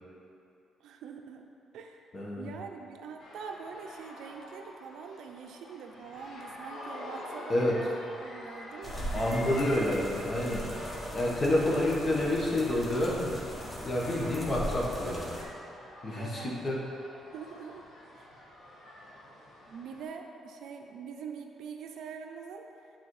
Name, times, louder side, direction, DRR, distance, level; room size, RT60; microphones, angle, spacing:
voice 1, 0.8-1.5 1.7-2.1 2.4-9.7 16.1-16.6 17.3-17.8 18.1-18.3 19.7-22.7, right 6 dB, 80° right, 3 dB, 0.5 m, -44 dB
voice 2, 2.1-2.5 7.5-7.8 9.1-10.7 11.1-13.4 13.8-15.3 16.0-16.8, left 1 dB, 35° left, -3 dB, 1.3 m, -29 dB
sound 1, 3.2-20.0, left 1 dB, 75° left, 1.3 m, -47 dB
sound 2, 8.8-15.4, equal, 20° left, 1.3 m, -39 dB
8.5 x 4.1 x 3.2 m, 2.8 s
cardioid pair, 90°, 0 cm